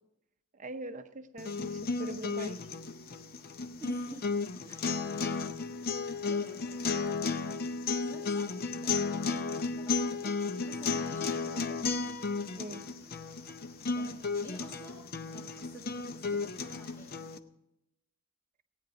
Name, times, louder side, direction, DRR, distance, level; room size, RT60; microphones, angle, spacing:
voice 1, 0.5-2.6 4.7-4.8 12.6-12.9, right 1 dB, 35° right, 8 dB, 0.7 m, -42 dB
sound 1, 1.4-17.4, left 4 dB, 45° left, 0.6 m, -34 dB
voice 2, 3.8-5.6 6.2-7.1 7.9-11.9 13.9-15.0 15.3-17.2, right 1 dB, 15° left, -3 dB, 2.0 m, -51 dB
16.5 x 9.4 x 5.1 m, 0.86 s
head